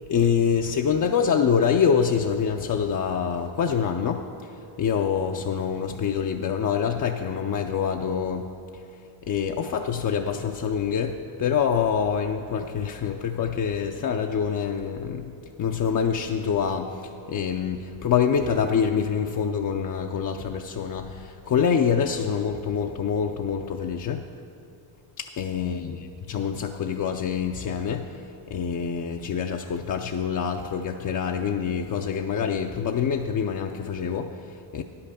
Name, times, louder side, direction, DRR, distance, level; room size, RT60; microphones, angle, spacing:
voice 1, 0.1-8.5 9.2-24.2 25.2-34.8, left 7 dB, 40° left, 3 dB, 0.5 m, -26 dB
10.0 x 5.8 x 6.6 m, 2.6 s
cardioid pair, 75°, 49 cm